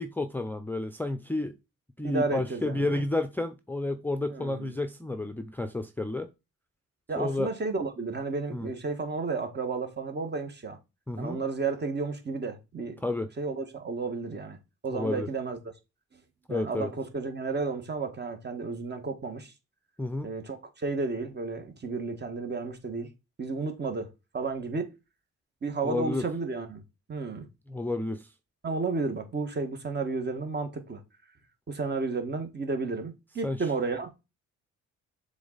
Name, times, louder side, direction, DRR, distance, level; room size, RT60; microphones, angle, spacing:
voice 1, 0.0-1.5 2.0-6.3 7.2-7.5 8.5-8.7 11.1-11.4 13.0-13.3 14.9-15.3 16.5-16.9 20.0-20.3 25.8-26.2 27.7-28.3 33.4-33.7, left 2 dB, 5° left, 0.6 m, -31 dB
voice 2, 2.0-3.0 4.3-4.7 7.1-10.8 11.2-13.0 13.4-14.6 14.8-15.6 16.1-16.2 16.5-19.5 20.2-23.1 23.4-24.9 25.6-26.8 27.1-27.5 28.6-31.0 31.7-34.1, right 4 dB, 35° right, 1.8 m, -32 dB
6.9 x 3.9 x 4.1 m
cardioid pair, 90°, 30 cm